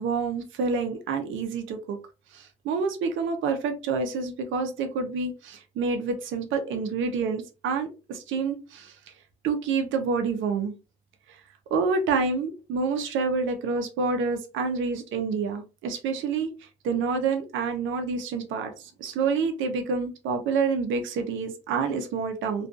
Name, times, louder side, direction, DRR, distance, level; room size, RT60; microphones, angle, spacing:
voice 1, 0.0-2.0 2.3-8.9 9.4-10.7 11.7-16.5 16.8-22.7, right 4 dB, 80° right, 5 dB, 0.6 m, -28 dB
2.4 x 2.3 x 2.4 m, 0.29 s
cardioid pair, 90°, 20 cm